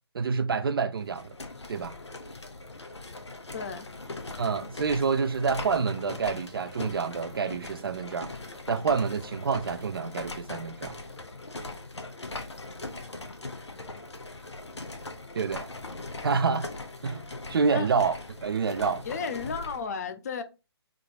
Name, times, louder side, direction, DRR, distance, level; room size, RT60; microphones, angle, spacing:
voice 1, 0.1-1.3 1.7-1.9 4.4-8.3 8.7-11.0 15.3-15.7 16.2-16.7 17.0-17.2 17.5-18.1 18.4-19.0, right 5 dB, 60° right, 0.4 m, -27 dB
sound 1, 1.0-19.9, left 2 dB, 85° left, 0.7 m, -40 dB
voice 2, 3.5-3.9 17.7-17.9 19.0-20.4, left 5 dB, 40° left, 0.5 m, -33 dB
3.6 x 2.3 x 3.7 m
figure-of-eight pair, 140°, 14 cm